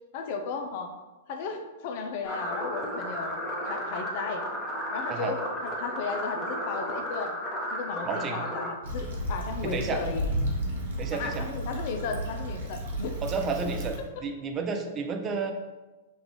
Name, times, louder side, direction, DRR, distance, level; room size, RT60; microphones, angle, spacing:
voice 1, 0.1-0.9 1.3-3.4 3.6-4.4 4.9-7.4 7.7-10.3 11.1-13.2 14.2-14.3, left 5 dB, 55° left, 5 dB, 0.5 m, -35 dB
sound 1, 2.2-8.7, equal, 15° left, 1.0 m, -34 dB
voice 2, 8.1-8.4 9.6-10.0 11.0-11.4 13.2-15.5, right 5 dB, 30° right, 4 dB, 0.5 m, -31 dB
Stream / Traffic noise roadway noise / Trickle dribble, 8.8-14.0, right 1 dB, 70° right, 0.8 m, -32 dB
5.3 x 2.5 x 3.1 m, 1.2 s
figure-of-eight pair, 105°, 0 cm